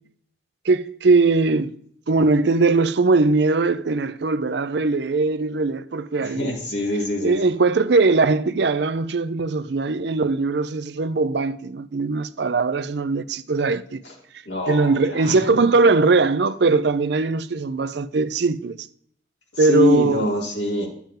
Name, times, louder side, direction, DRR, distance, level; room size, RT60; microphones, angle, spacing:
voice 1, 0.6-1.7 2.1-6.5 7.2-14.0 14.7-18.8 19.6-20.3, right 3 dB, 60° right, 0.5 m, -20 dB
voice 2, 6.2-7.3 14.5-15.6 19.6-20.9, left 2 dB, 65° left, 2.9 m, -24 dB
10.5 x 7.2 x 3.7 m
head